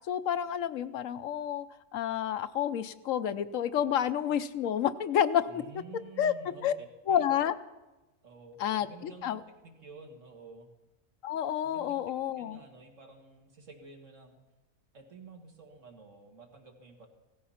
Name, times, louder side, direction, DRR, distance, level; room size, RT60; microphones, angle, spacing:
voice 1, 0.1-1.6 1.9-5.6 6.2-6.3 6.6-6.7 7.1-7.6 8.6-9.4 11.2-12.6, left 9 dB, 75° left, 12 dB, 1.0 m, -29 dB
voice 2, 5.5-6.7 7.1-7.2 8.2-10.7 11.6-14.4 14.9-17.1, right 4 dB, 65° right, 2 dB, 2.3 m, -51 dB
16.5 x 13.5 x 5.7 m, 1.1 s
omnidirectional pair, 1.4 m